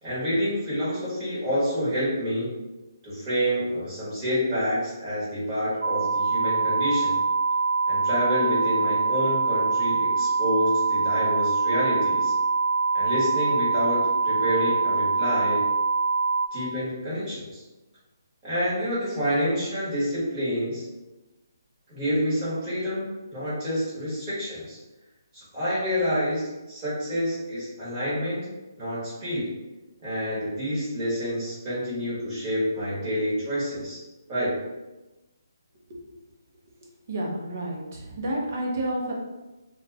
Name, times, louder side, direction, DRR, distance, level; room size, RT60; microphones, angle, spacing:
voice 1, 0.0-2.5 3.0-7.2 7.9-12.3 12.9-15.6 16.5-17.6 18.4-20.8 21.9-23.0 23.3-24.8 25.3-28.5 28.8-29.5 30.0-34.0 34.3-34.5, equal, 15° right, -10 dB, 1.3 m, -28 dB
sound 1, 5.8-16.5, right 4 dB, 65° right, 0.3 m, -24 dB
voice 2, 37.1-39.1, right 1 dB, 40° right, -2 dB, 0.8 m, -30 dB
2.4 x 2.3 x 3.3 m, 1.1 s
hypercardioid pair, 165°, 2 cm